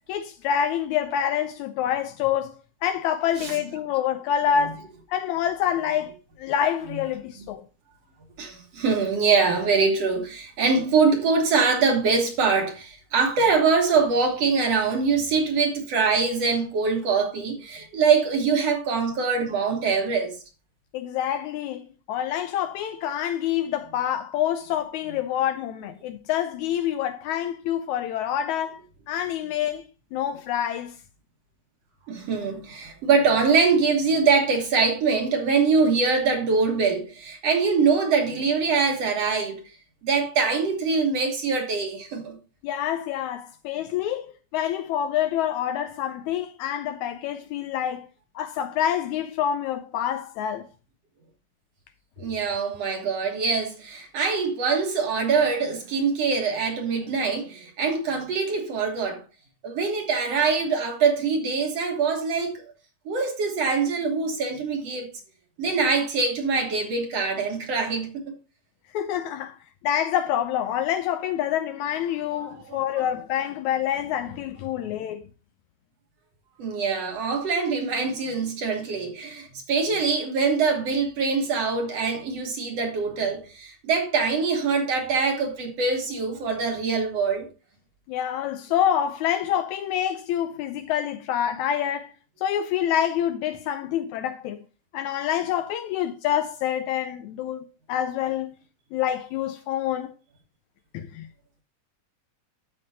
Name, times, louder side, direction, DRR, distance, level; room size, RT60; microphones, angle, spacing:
voice 1, 0.1-6.1 6.4-7.7 20.9-21.8 22.1-28.8 29.1-29.9 30.1-31.0 42.6-48.1 48.4-50.7 68.9-69.6 69.8-75.2 88.1-92.1 92.4-94.6 94.9-98.5 98.9-100.1 100.9-101.3, left 10 dB, 80° left, 1.8 m, -27 dB
voice 2, 8.4-20.4 32.1-39.6 40.0-42.4 52.2-59.2 59.6-62.6 63.1-65.1 65.6-68.2 72.4-73.1 76.6-87.5, right 5 dB, 60° right, 2.2 m, -23 dB
13.0 x 5.4 x 2.7 m
omnidirectional pair, 3.6 m